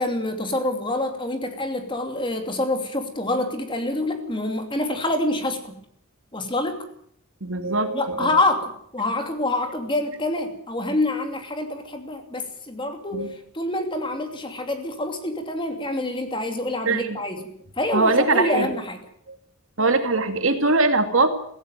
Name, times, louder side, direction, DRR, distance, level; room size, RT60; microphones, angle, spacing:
voice 1, 0.0-5.8 6.3-6.9 7.9-13.3 13.5-19.0, left 2 dB, 25° left, 5 dB, 2.8 m, -26 dB
voice 2, 7.4-8.4 13.1-13.3 16.9-17.2 17.9-18.7 19.8-21.3, right 3 dB, 65° right, 7 dB, 2.3 m, -21 dB
17.0 x 16.5 x 9.3 m, 0.66 s
head